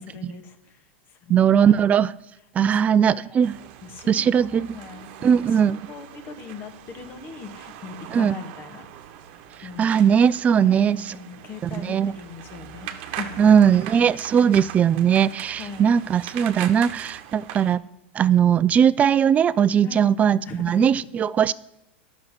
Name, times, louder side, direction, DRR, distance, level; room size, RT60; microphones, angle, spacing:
voice 1, 0.0-1.9 2.6-2.8 3.1-8.9 9.3-10.1 10.5-14.4 15.6-16.0 19.8-20.1 20.4-20.9, left 5 dB, 35° left, 6 dB, 1.6 m, -40 dB
voice 2, 1.3-2.1 2.6-3.6 4.1-4.7 5.2-5.8 8.1-8.3 9.8-11.0 11.8-12.1 13.4-17.8 18.2-21.5, right 8 dB, 20° right, 19 dB, 0.4 m, -19 dB
sound 1, 3.4-17.8, right 10 dB, 55° right, 1.1 m, -40 dB
10.5 x 6.4 x 6.1 m, 0.90 s
hypercardioid pair, 125°, 6 cm